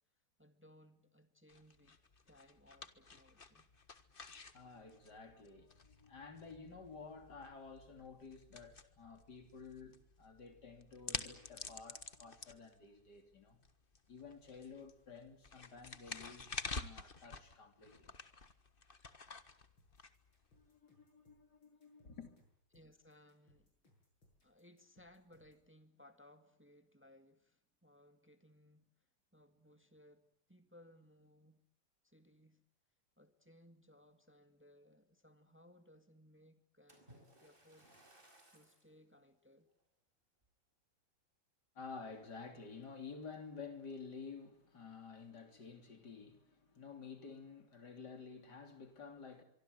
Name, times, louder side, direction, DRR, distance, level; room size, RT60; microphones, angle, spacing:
voice 1, 0.4-2.0 2.3-3.7 22.7-23.7 24.4-28.9 29.3-31.6 32.0-32.6 33.2-37.9 38.5-39.7, left 1 dB, 5° right, 1.7 m, -64 dB
sound 1, 1.5-20.7, left 4 dB, 30° left, 1.4 m, -50 dB
voice 2, 4.5-13.6 14.1-18.2 20.5-22.4 41.8-49.4, left 5 dB, 55° left, 3.7 m, -52 dB
sound 2, 19.8-25.7, left 1 dB, 80° left, 9.0 m, -72 dB
Splash splatter, 36.9-38.9 39.6-39.8 40.4-40.5, right 1 dB, 25° right, 5.8 m, -64 dB
25.0 x 24.0 x 8.1 m
omnidirectional pair, 2.2 m